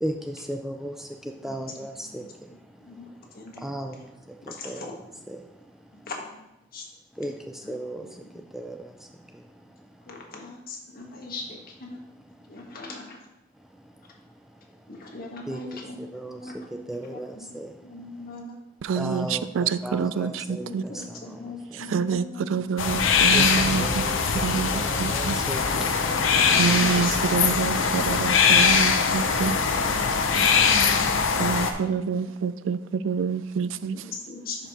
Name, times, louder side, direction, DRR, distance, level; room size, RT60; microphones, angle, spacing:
voice 1, 0.0-2.3 3.6-4.9 7.2-9.1 9.3-9.4 15.5-15.6 16.0-16.4 16.9-17.7 18.9-20.9 23.3-24.4 24.7-26.0, right 1 dB, ahead, 0.3 m, -35 dB
voice 2, 1.4-3.1 3.3-3.6 3.9-4.0 4.4-4.9 6.0-6.4 6.7-6.9 7.2-7.3 7.6-8.4 10.0-12.0 12.5-13.2 14.9-18.6 20.3-23.2 26.2-28.2 29.5-32.2 33.9-34.6, left 2 dB, 50° left, 1.4 m, -40 dB
voice 3, 18.8-20.8 21.8-24.1 24.3-25.4 26.6-29.6 31.4-34.0, right 6 dB, 80° right, 0.3 m, -27 dB
sound 1, 22.8-31.7, left 5 dB, 85° left, 0.7 m, -22 dB
10.5 x 5.1 x 2.9 m
head